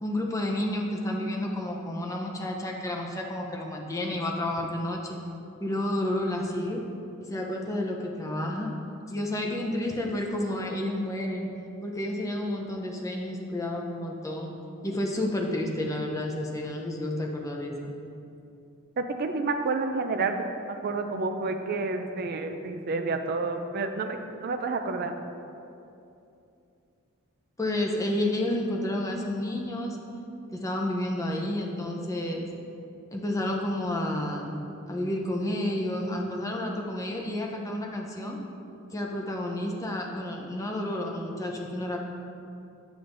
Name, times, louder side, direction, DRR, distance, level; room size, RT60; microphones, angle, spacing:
voice 1, 0.0-5.2 5.6-6.8 7.3-8.7 9.1-11.5 11.8-14.5 14.8-17.9 27.6-30.0 30.5-32.5 33.1-34.4 34.9-38.4 38.9-42.0, left 1 dB, 15° left, 0 dB, 0.6 m, -30 dB
voice 2, 19.0-20.3 20.8-25.2, right 3 dB, 45° right, 6 dB, 0.4 m, -29 dB
7.8 x 7.0 x 2.6 m, 2.7 s
head